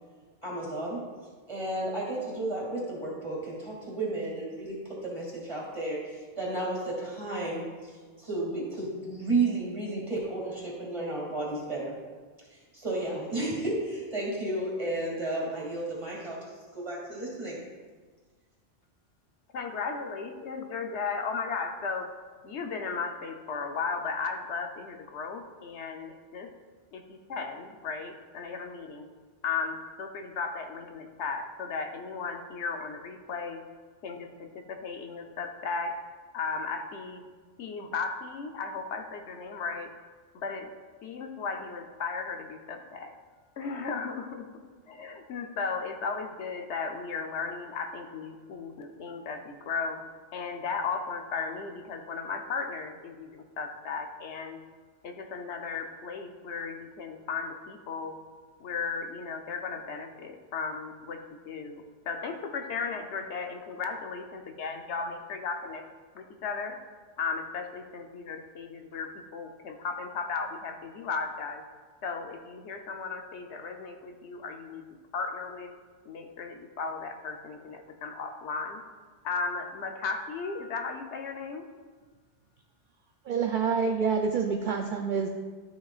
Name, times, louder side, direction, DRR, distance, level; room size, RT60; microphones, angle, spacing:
voice 1, 0.4-1.1 1.5-12.0 12.5-17.6, right 2 dB, 30° right, -5 dB, 2.5 m, -33 dB
voice 2, 19.5-22.1 22.4-26.5 26.9-29.1 29.4-33.6 34.0-36.0 36.3-37.2 37.6-39.9 40.3-40.7 41.0-43.1 43.6-44.5 44.9-50.0 50.3-54.6 55.0-58.2 58.6-65.8 66.1-66.8 67.2-71.6 72.0-74.8 75.1-75.7 76.0-78.8 79.2-81.7, left 5 dB, 80° left, 5 dB, 1.0 m, -35 dB
voice 3, 83.3-85.3, right 5 dB, 60° right, 4 dB, 0.6 m, -27 dB
12.5 x 6.3 x 2.4 m, 1.4 s
omnidirectional pair, 1.1 m